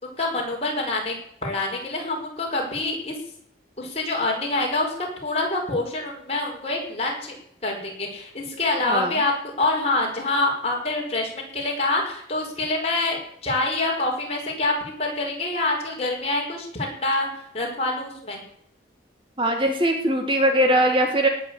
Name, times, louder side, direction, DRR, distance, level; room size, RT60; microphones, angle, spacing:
voice 1, 0.0-1.2 1.4-3.1 3.8-7.4 7.6-17.3 17.5-18.4, left 2 dB, 35° left, -1 dB, 5.2 m, -26 dB
voice 2, 8.8-9.2 19.4-21.3, right 1 dB, 25° right, 4 dB, 1.8 m, -21 dB
18.5 x 6.9 x 8.8 m, 0.68 s
head